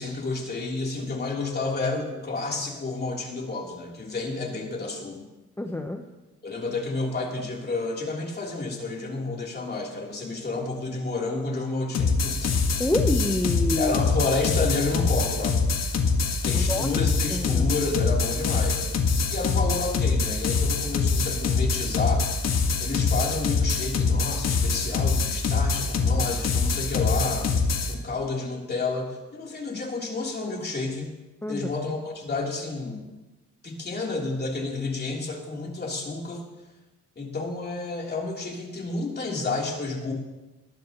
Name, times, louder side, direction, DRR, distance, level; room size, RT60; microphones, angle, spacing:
voice 1, 0.0-5.2 6.4-12.5 13.8-15.6 16.4-18.8 19.3-22.2 22.8-27.5 27.9-31.1 31.5-33.1 33.6-36.4 37.2-40.1, left 3 dB, 35° left, -1 dB, 3.3 m, -30 dB
voice 2, 5.6-6.0 12.8-14.0 16.5-16.9 17.3-17.7 31.4-31.7, left 1 dB, 10° left, 4 dB, 0.9 m, -27 dB
sound 1, 11.9-27.9, left 4 dB, 60° left, 1.6 m, -24 dB
19.0 x 12.5 x 3.0 m, 1.1 s
cardioid pair, 90°, 30 cm